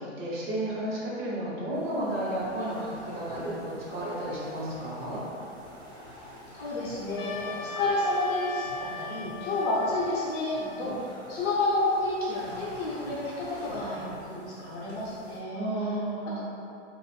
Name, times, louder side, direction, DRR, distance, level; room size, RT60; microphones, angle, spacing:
voice 1, 0.0-5.2 15.5-16.4, right 1 dB, 55° right, -7 dB, 1.2 m, -32 dB
sound 1, 1.7-15.4, equal, 10° right, 0.5 m, -48 dB
voice 2, 6.5-15.6 16.2-16.4, left 2 dB, 35° left, -7 dB, 0.7 m, -30 dB
Trumpet, 7.2-11.6, left 4 dB, 80° left, 0.5 m, -40 dB
2.5 x 2.5 x 4.1 m, 2.7 s
hypercardioid pair, 145°, 37 cm